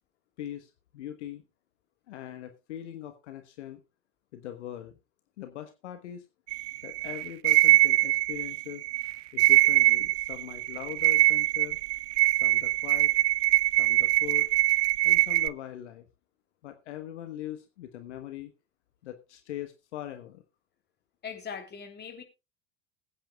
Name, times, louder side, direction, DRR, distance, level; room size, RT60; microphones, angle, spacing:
voice 1, 0.4-1.4 2.1-3.8 4.3-5.0 5.4-6.2 6.8-8.8 9.3-11.8 12.3-13.1 13.8-14.5 15.0-16.0 16.6-18.5 19.0-20.4, left 11 dB, 70° left, 1.2 m, -41 dB
sound 1, 6.5-15.5, right 18 dB, 60° right, 0.6 m, -23 dB
voice 2, 21.2-22.2, left 6 dB, 30° left, 3.0 m, -40 dB
21.0 x 8.8 x 2.3 m
hypercardioid pair, 80°, 36 cm